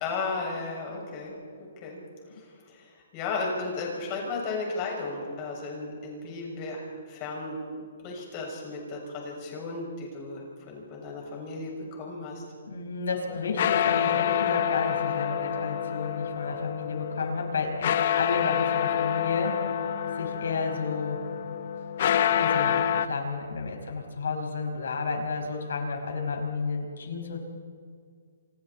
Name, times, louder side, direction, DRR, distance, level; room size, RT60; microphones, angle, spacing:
voice 1, 0.0-12.4, left 3 dB, 25° left, -1 dB, 6.5 m, -35 dB
voice 2, 12.7-19.6 20.2-21.2 22.3-27.4, left 4 dB, 80° left, 3 dB, 5.3 m, -32 dB
sound 1, 13.3-23.1, left 9 dB, 45° left, 0.8 m, -27 dB
27.5 x 26.5 x 4.3 m, 2.1 s
hypercardioid pair, 165°, 0 cm